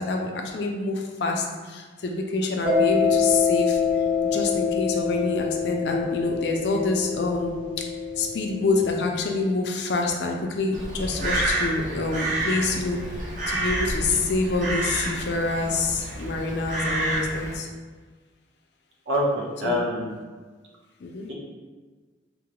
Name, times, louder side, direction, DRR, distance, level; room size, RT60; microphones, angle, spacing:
voice 1, 0.0-3.8 4.2-7.5 8.2-13.0 13.5-17.7 19.6-19.8 21.0-21.3, left 3 dB, 65° left, 2 dB, 0.4 m, -26 dB
Mallet percussion, 2.6-9.0, left 6 dB, 60° right, 1.3 m, -25 dB
Crow, 10.7-17.6, right 1 dB, 40° right, 0.6 m, -29 dB
voice 2, 19.1-20.2 21.3-21.4, equal, 85° right, -3 dB, 0.7 m, -25 dB
3.6 x 2.1 x 2.9 m, 1.4 s
head